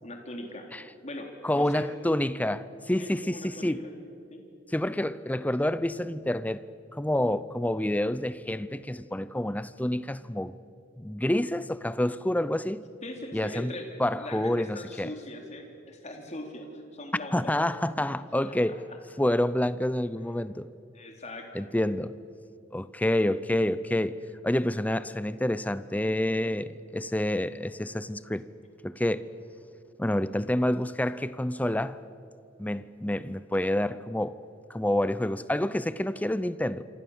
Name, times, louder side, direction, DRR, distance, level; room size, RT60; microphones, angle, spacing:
voice 1, 0.0-0.7 1.0-1.9 3.0-3.9 4.3-4.4 13.0-17.5 18.4-19.0 20.9-21.6, left 1 dB, 35° left, 3.5 m, -41 dB
voice 2, 1.4-3.9 4.7-6.7 6.9-10.6 11.0-12.8 13.3-13.7 14.0-15.1 17.3-18.8 19.2-20.7 21.5-22.1 22.7-24.2 24.4-28.5 28.8-29.3 30.0-32.0 32.6-34.4 34.7-36.8, left 1 dB, 10° left, 0.6 m, -28 dB
28.0 x 25.5 x 7.3 m
head